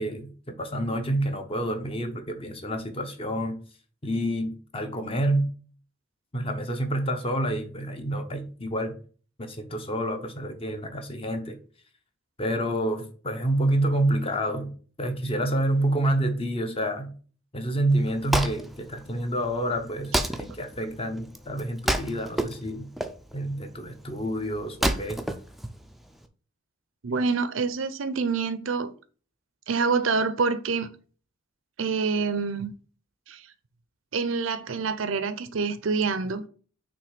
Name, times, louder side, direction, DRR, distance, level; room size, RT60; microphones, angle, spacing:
voice 1, 0.0-3.6 4.0-5.5 6.3-9.0 9.4-11.6 12.4-17.1 17.5-22.9 23.3-25.2, right 1 dB, 30° left, 0.8 m, -28 dB
Wood, 17.9-26.3, right 1 dB, ahead, 0.4 m, -31 dB
voice 2, 27.0-28.9 29.7-30.9 31.8-32.7 33.3-33.4 34.1-36.4, right 4 dB, 75° right, 0.6 m, -26 dB
6.0 x 3.2 x 5.0 m
head